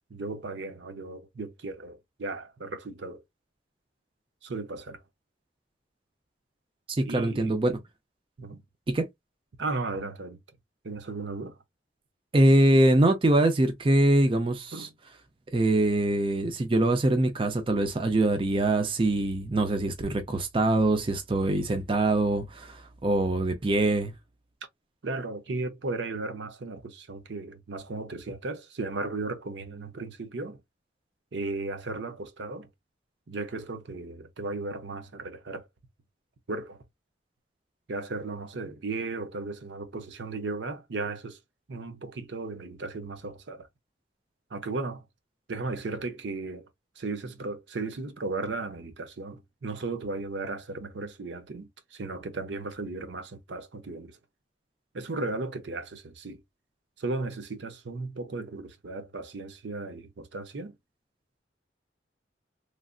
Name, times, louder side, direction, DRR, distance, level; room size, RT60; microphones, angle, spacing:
voice 1, 0.1-3.2 4.4-5.0 7.0-7.6 8.4-8.6 9.6-10.4 10.8-11.6 14.7-14.9 25.0-30.6 31.3-32.7 33.3-35.7 36.5-36.8 37.9-41.4 41.7-43.7 44.5-45.1 45.5-46.7 47.0-54.2 54.9-56.4 57.0-60.7, right 3 dB, 75° right, 0.6 m, -35 dB
voice 2, 6.9-7.8 8.9-9.1 12.3-14.9 15.5-24.1, right 1 dB, 30° right, 0.5 m, -23 dB
3.2 x 2.5 x 2.3 m
head